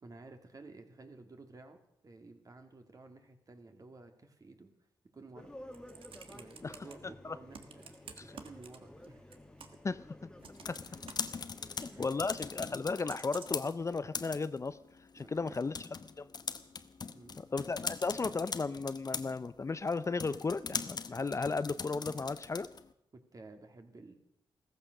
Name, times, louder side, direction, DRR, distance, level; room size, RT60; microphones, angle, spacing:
voice 1, 0.0-4.7 5.1-5.5 6.3-9.2 10.6-11.1 11.3-12.1 15.2-15.6 17.1-17.4 23.1-24.2, right 3 dB, 40° right, 6 dB, 2.5 m, -54 dB
sound 1, 5.3-12.8, left 1 dB, 10° left, 1.6 m, -53 dB
Computer keyboard, 5.5-6.9 7.5-9.1 9.3-9.9 10.4-12.0 13.1-13.7 14.4-14.5, right 6 dB, 75° right, 1.6 m, -51 dB
sound 2, 10.4-22.9, left 5 dB, 50° left, 1.0 m, -42 dB
voice 2, 12.0-14.8 15.1-15.8 16.2-16.3 17.5-22.7, left 4 dB, 35° left, 15 dB, 0.5 m, -34 dB
15.0 x 14.5 x 6.6 m, 0.77 s
cardioid pair, 80°, 9 cm